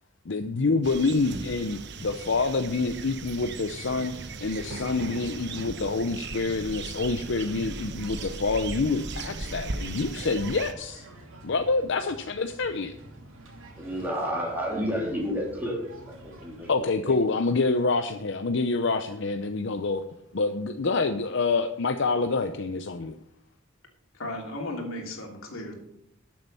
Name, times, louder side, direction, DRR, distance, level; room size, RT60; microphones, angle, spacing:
voice 1, 0.3-4.1 4.4-11.1 11.4-13.0 16.7-20.0 20.3-23.2, left 3 dB, 60° left, 8 dB, 0.6 m, -27 dB
sound 1, 0.8-10.7, right 3 dB, 60° right, 0.9 m, -37 dB
sound 2, 3.5-16.7, right 1 dB, 80° right, 2.9 m, -49 dB
voice 2, 13.8-15.8 16.1-17.3, equal, 10° right, -2 dB, 3.2 m, -31 dB
voice 3, 24.1-25.8, left 1 dB, 85° left, 1 dB, 3.0 m, -35 dB
12.5 x 7.7 x 5.5 m, 0.77 s
head